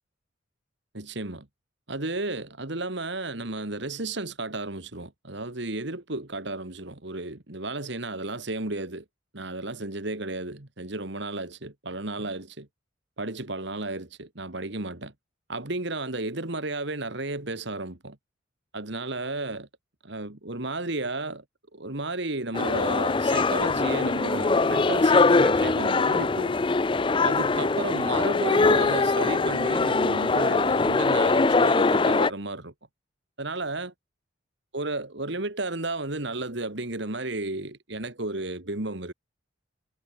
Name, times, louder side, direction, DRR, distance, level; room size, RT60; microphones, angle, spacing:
voice 1, 0.9-1.5 1.9-9.0 9.3-12.7 13.2-15.1 15.5-18.2 18.7-19.7 20.0-21.4 21.7-26.6 27.2-32.7 33.4-33.9 34.7-39.1, right 2 dB, 55° right, 2.0 m, -33 dB
sound 1, 22.5-32.3, left 3 dB, 25° left, 0.4 m, -22 dB
head